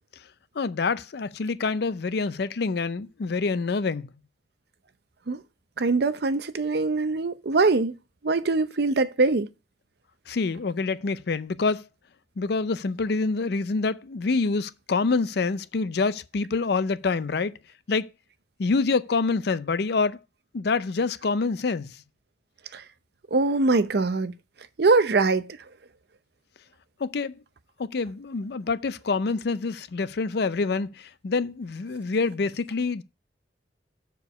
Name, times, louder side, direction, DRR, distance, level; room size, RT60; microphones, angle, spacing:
voice 1, 0.6-4.1 10.3-11.9 12.4-17.6 17.9-18.1 18.6-20.2 20.5-22.0 27.0-27.4 27.8-33.0, left 4 dB, 60° left, 0.5 m, -26 dB
voice 2, 5.8-7.9 8.2-9.5 22.7-22.8 23.3-24.3 24.8-25.5, right 3 dB, 60° right, 0.6 m, -22 dB
7.0 x 4.6 x 5.2 m
head